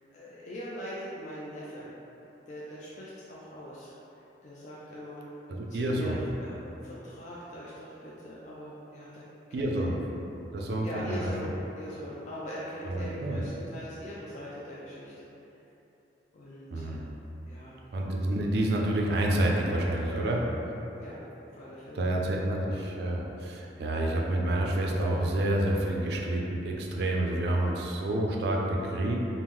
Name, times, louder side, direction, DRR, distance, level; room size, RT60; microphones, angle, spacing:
voice 1, 0.1-1.9 2.5-3.9 4.4-5.2 5.7-6.1 6.4-9.2 9.5-9.7 10.8-15.3 16.3-17.0 17.5-17.8 20.1-20.5 21.0-21.2 21.5-22.0, equal, 40° left, -8 dB, 0.3 m, -41 dB
voice 2, 5.5-6.2 9.5-10.0 10.5-11.3 12.9-13.4 16.7-17.1 17.9-20.4 21.9-29.2, right 1 dB, 60° right, -1 dB, 0.4 m, -28 dB
3.5 x 2.0 x 2.9 m, 3.0 s
head